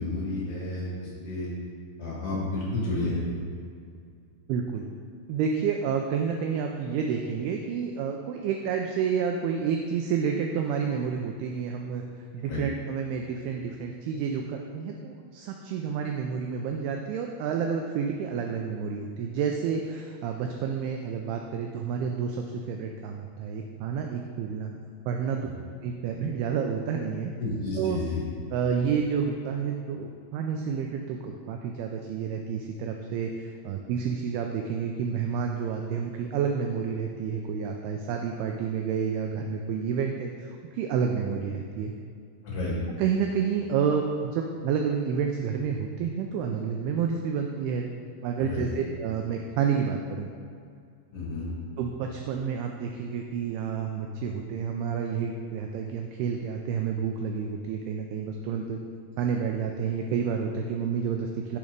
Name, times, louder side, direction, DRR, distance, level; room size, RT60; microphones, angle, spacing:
voice 1, 0.0-1.5 2.0-3.3 12.5-12.6 25.4-25.5 27.4-28.2 42.4-42.7 48.4-48.6 51.1-51.5, left 2 dB, 50° left, -6 dB, 1.8 m, -31 dB
voice 2, 4.5-4.8 5.3-12.0 12.3-24.7 25.1-25.5 25.8-27.3 27.8-28.0 28.5-41.9 43.0-47.9 48.2-50.3 51.8-58.8 59.2-61.6, right 6 dB, 80° right, 2 dB, 2.3 m, -29 dB
6.9 x 6.3 x 5.1 m, 2.3 s
omnidirectional pair, 4.9 m